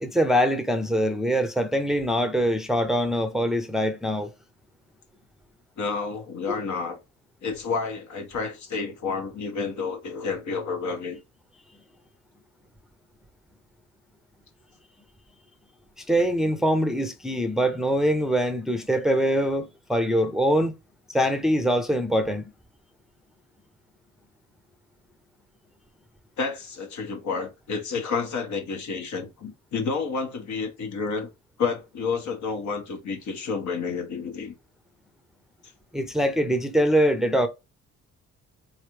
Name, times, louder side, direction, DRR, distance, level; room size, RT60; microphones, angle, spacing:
voice 1, 0.0-4.3 16.1-20.8 21.1-22.5 35.9-37.5, equal, ahead, 0.6 m, -23 dB
voice 2, 5.8-7.0 7.4-11.2 26.4-31.3 31.6-34.5, left 5 dB, 70° left, 1.5 m, -30 dB
4.1 x 3.2 x 3.1 m
cardioid pair, 90°, 30 cm